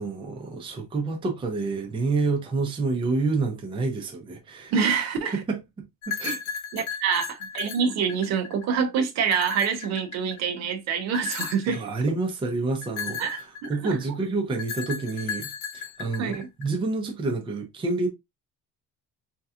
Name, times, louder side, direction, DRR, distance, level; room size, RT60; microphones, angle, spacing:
voice 1, 0.0-5.0 5.5-5.6 6.1-6.4 11.7-13.2 13.7-18.1, right 3 dB, 15° right, 0.6 m, -28 dB
voice 2, 4.7-5.4 6.7-11.9 13.2-14.0 16.2-16.5, right 6 dB, 50° right, 0.7 m, -26 dB
sound 1, 6.0-8.7 9.2-10.5 11.1-11.8 12.8-14.0 14.6-16.7, left 6 dB, 80° left, 1.0 m, -35 dB
4.4 x 2.8 x 2.3 m
cardioid pair, 170°, 33 cm